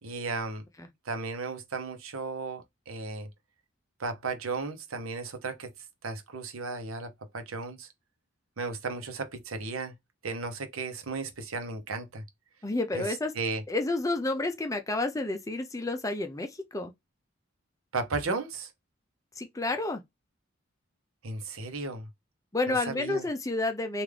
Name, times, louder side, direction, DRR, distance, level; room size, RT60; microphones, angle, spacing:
voice 1, 0.0-0.6 1.0-3.3 4.0-5.7 6.0-7.9 8.6-9.9 10.2-12.2 12.9-13.0 13.3-13.6 17.9-18.7 21.2-22.1 22.7-23.2, right 3 dB, 80° right, 0.8 m, -35 dB
voice 2, 12.6-13.3 13.7-16.9 19.4-20.0 22.5-24.0, left 2 dB, 15° left, 0.5 m, -30 dB
3.5 x 2.5 x 3.3 m
head